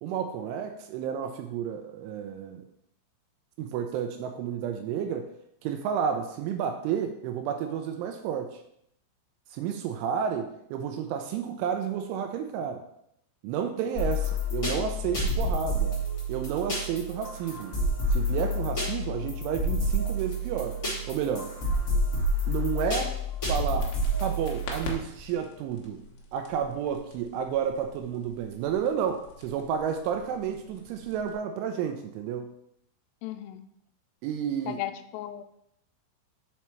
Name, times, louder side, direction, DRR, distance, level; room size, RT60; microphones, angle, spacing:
voice 1, 0.0-2.7 3.6-5.3 5.6-8.6 9.5-12.8 13.4-15.9 16.3-17.8 18.1-20.8 21.1-21.5 22.5-23.2 23.4-23.9 24.2-26.0 26.3-32.5 34.2-34.8, right 8 dB, 85° right, 5 dB, 2.9 m, -31 dB
sound 1, 13.9-24.9, equal, 30° left, 1.9 m, -29 dB
sound 2, 23.8-31.4, left 3 dB, 70° left, 2.8 m, -45 dB
voice 2, 33.2-33.6 34.7-35.4, left 13 dB, 85° left, 8 dB, 3.1 m, -35 dB
7.2 x 4.5 x 4.4 m, 0.75 s
omnidirectional pair, 5.8 m